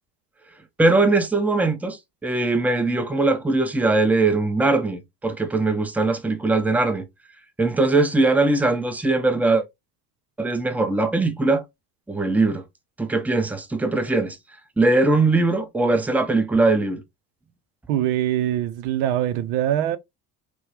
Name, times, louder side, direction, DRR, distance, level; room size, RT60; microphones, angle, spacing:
voice 1, 0.8-7.1 7.6-9.6 10.4-11.6 12.1-12.6 13.0-14.4 14.8-17.0, right 3 dB, 5° right, 0.6 m, -20 dB
voice 2, 17.9-20.0, right 11 dB, 75° right, 0.6 m, -23 dB
4.4 x 2.0 x 2.8 m
hypercardioid pair, 65°, 47 cm